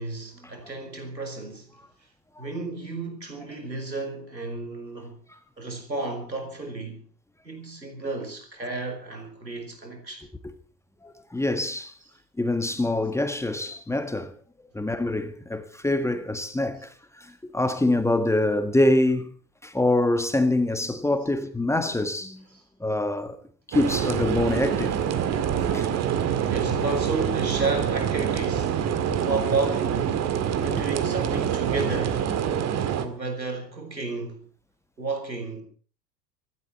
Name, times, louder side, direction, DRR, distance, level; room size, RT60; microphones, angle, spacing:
voice 1, 0.0-1.7 2.4-5.2 5.6-7.0 7.4-10.3 14.7-14.8 22.5-22.6 26.5-30.2 30.6-32.3 33.0-34.4 35.0-35.6, right 3 dB, 90° right, 4.6 m, -32 dB
voice 2, 11.0-11.9 12.4-14.3 14.7-19.3 19.6-22.4 22.8-23.4 23.7-25.0 25.7-25.9 29.1-29.2 30.7-30.8, left 2 dB, 5° left, 1.6 m, -25 dB
sound 1, 23.7-33.1, right 8 dB, 30° right, 2.1 m, -26 dB
25.0 x 12.0 x 4.3 m
figure-of-eight pair, 85°, 50 cm